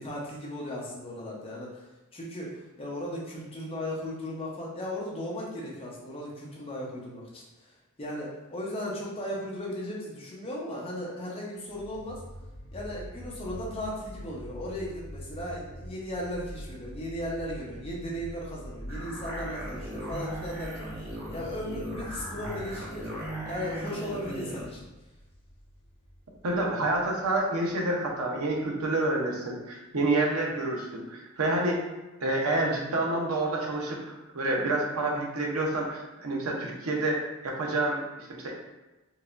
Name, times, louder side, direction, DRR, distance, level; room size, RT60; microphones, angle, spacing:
voice 1, 0.0-1.9 2.1-12.2 12.7-20.9 21.3-23.1 23.4-24.9, left 1 dB, 25° left, -4 dB, 0.8 m, -36 dB
sound 1, 11.7-28.7, equal, 65° left, 0.7 m, -45 dB
sound 2, 18.9-24.7, right 1 dB, 45° right, 0.9 m, -38 dB
voice 2, 26.4-31.8 32.2-38.5, right 2 dB, 85° right, -1 dB, 0.7 m, -28 dB
4.6 x 2.2 x 2.5 m, 1.0 s
head